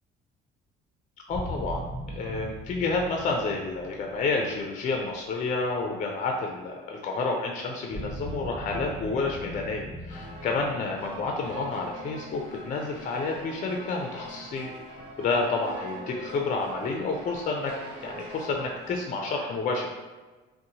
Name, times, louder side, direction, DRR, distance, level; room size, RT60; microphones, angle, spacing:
voice 1, 1.3-1.8 2.1-14.7 15.2-17.7 18.0-20.0, left 3 dB, 35° left, 1 dB, 0.4 m, -29 dB
sound 1, 1.3-6.3 7.9-13.6, right 1 dB, 10° left, 0.9 m, -40 dB
sound 2, 10.1-19.0, right 1 dB, 75° right, 0.9 m, -43 dB
2.6 x 2.1 x 2.7 m, 1.3 s
cardioid pair, 100°, 21 cm